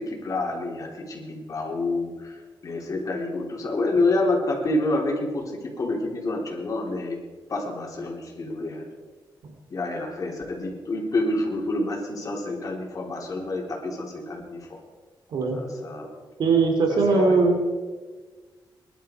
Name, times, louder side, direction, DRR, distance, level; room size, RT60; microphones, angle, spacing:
voice 1, 0.0-7.2 7.5-8.9 9.7-14.8 15.5-16.1 16.9-17.4, left 2 dB, 45° left, 0 dB, 3.8 m, -28 dB
voice 2, 15.3-15.6 16.4-17.6, right 4 dB, 70° right, 3 dB, 2.8 m, -20 dB
21.5 x 11.5 x 4.7 m, 1.4 s
wide cardioid pair, 130°, 8 cm